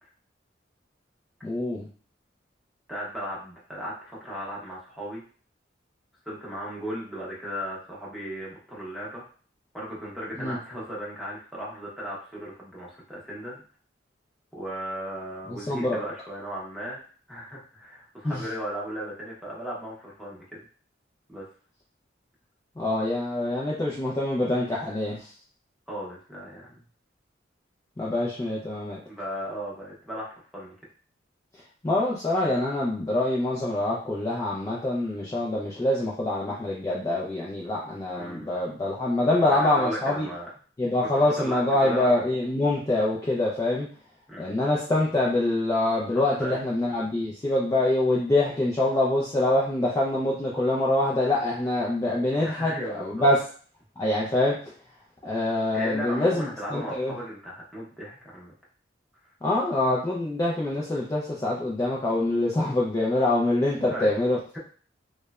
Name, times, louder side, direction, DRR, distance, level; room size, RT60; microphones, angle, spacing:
voice 1, 1.4-1.9 10.4-10.6 15.7-16.0 18.2-18.4 22.8-25.2 28.0-29.0 31.8-40.3 40.8-43.9 44.4-53.4 54.0-54.6 55.2-57.1 59.4-64.4, left 1 dB, 20° left, -5 dB, 0.3 m, -25 dB
voice 2, 2.9-5.2 6.3-9.2 9.7-13.6 14.5-17.0 17.3-20.6 21.3-21.5 25.9-26.7 29.1-30.7 38.2-38.5 39.4-40.5 41.0-41.1 41.4-42.1 44.3-44.6 46.1-46.6 52.4-53.3 55.7-58.5 63.9-64.1, equal, ahead, -6 dB, 0.7 m, -36 dB
3.0 x 2.0 x 2.3 m, 0.42 s
head